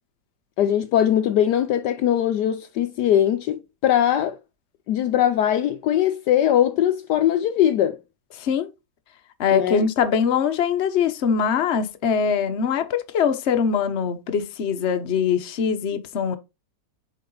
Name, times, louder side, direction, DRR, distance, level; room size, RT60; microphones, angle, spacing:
voice 1, 0.6-4.4 4.9-8.0 9.5-9.8, left 10 dB, 70° left, 1.1 m, -21 dB
voice 2, 8.4-8.7 9.4-16.4, left 6 dB, 45° left, 1.0 m, -22 dB
7.1 x 4.7 x 3.8 m
omnidirectional pair, 2.0 m